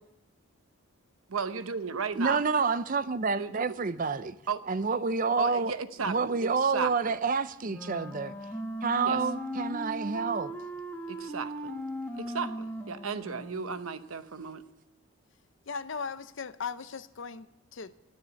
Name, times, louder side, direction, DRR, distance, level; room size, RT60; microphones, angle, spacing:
voice 1, 1.3-2.4 3.4-3.7 4.5-4.9 5.4-7.1 9.0-9.2 11.1-11.7 12.1-14.6, right 5 dB, 75° right, 0.8 m, -35 dB
voice 2, 2.1-4.4 4.7-5.7 6.1-8.3 8.8-10.5, right 4 dB, 40° right, 0.5 m, -28 dB
Wind instrument woodwind instrument, 7.6-13.9, equal, 10° left, 1.2 m, -38 dB
voice 3, 15.7-17.5 17.7-17.9, left 5 dB, 60° left, 0.6 m, -37 dB
12.0 x 10.5 x 8.2 m
head